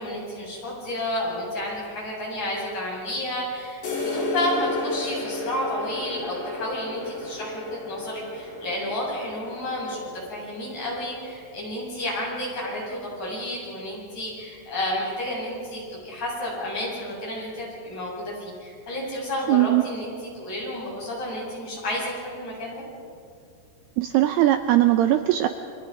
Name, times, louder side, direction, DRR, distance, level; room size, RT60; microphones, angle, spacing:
voice 1, 0.0-10.0 10.3-22.8, left 1 dB, 40° left, -5 dB, 9.2 m, -31 dB
sound 1, 3.8-11.4, left 2 dB, 65° left, 7.1 m, -33 dB
voice 2, 19.5-19.8 24.0-25.5, right 14 dB, 85° right, 8 dB, 2.3 m, -19 dB
29.5 x 25.0 x 5.3 m, 2.3 s
omnidirectional pair, 5.6 m